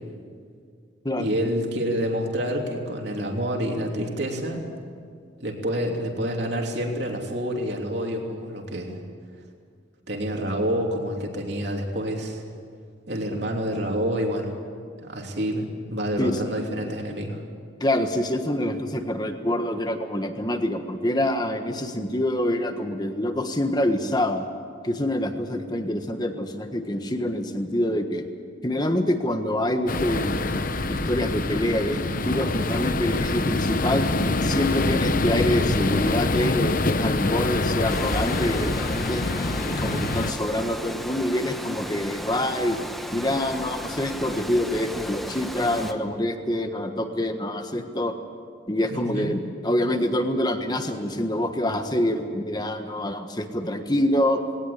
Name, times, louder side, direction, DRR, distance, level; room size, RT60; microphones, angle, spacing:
voice 1, 1.2-4.6 5.4-9.0 10.1-12.4 13.1-14.5 15.0-17.4 39.9-40.0 48.9-49.3, equal, 60° right, 1 dB, 3.1 m, -28 dB
voice 2, 17.8-24.4 24.8-28.2 28.6-30.4 30.9-34.1 34.4-39.2 39.6-42.8 43.1-48.1 48.7-54.4, left 1 dB, 20° left, 6 dB, 1.4 m, -26 dB
sound 1, 29.9-40.3, left 2 dB, 45° left, 0.8 m, -25 dB
Water, 37.9-45.9, equal, ahead, 1.0 m, -35 dB
20.0 x 18.5 x 8.7 m, 2.2 s
head